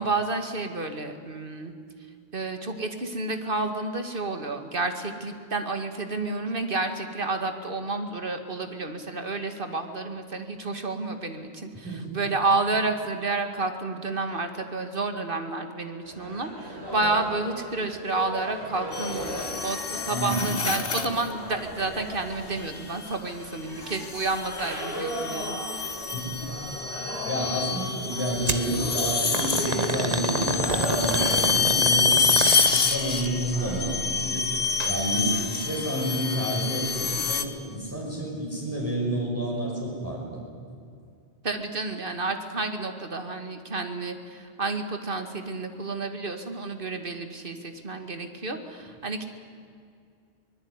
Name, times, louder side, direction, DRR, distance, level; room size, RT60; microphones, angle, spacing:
voice 1, 0.0-1.7 2.3-26.0 35.1-35.5 41.4-49.3, right 3 dB, 55° right, 7 dB, 2.3 m, -30 dB
voice 2, 11.8-12.2 20.1-20.6 26.1-26.5 26.9-32.1 32.6-34.5 34.8-40.4, right 1 dB, 15° right, -4 dB, 6.4 m, -30 dB
sound 1, 16.0-33.8, equal, 75° right, 8.5 m, -37 dB
sound 2, 18.9-21.3 22.7-23.1 23.9-37.4, left 5 dB, 60° left, 1.5 m, -27 dB
sound 3, 28.5-28.7 29.3-33.0 34.6-34.9 35.3-35.4 36.2-36.3, right 2 dB, 40° right, 1.7 m, -28 dB
24.5 x 20.5 x 9.8 m, 2.3 s
omnidirectional pair, 1.1 m